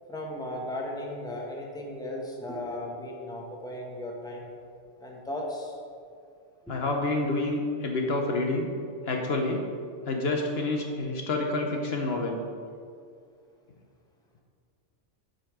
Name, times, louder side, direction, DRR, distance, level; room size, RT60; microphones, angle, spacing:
voice 1, 0.1-4.5 5.0-5.8 6.6-6.7, left 1 dB, 5° left, -1 dB, 1.1 m, -36 dB
voice 2, 6.7-8.7 9.1-9.6 10.1-12.4, left 2 dB, 60° left, 2 dB, 1.0 m, -28 dB
8.4 x 5.2 x 6.0 m, 2.2 s
omnidirectional pair, 1.2 m